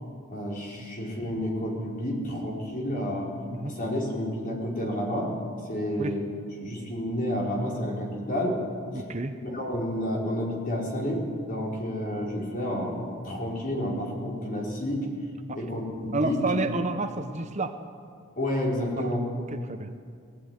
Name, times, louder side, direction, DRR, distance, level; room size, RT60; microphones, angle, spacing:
voice 1, 0.3-3.3 3.6-5.3 5.7-8.6 8.9-9.0 9.4-15.1 15.5-16.4 18.4-19.3, left 1 dB, 40° left, -2 dB, 4.5 m, -30 dB
voice 2, 8.9-9.3 15.5-15.6 16.1-17.8 18.9-19.1 19.7-19.9, right 2 dB, 30° right, 7 dB, 0.8 m, -29 dB
19.0 x 15.0 x 9.7 m, 2.2 s
head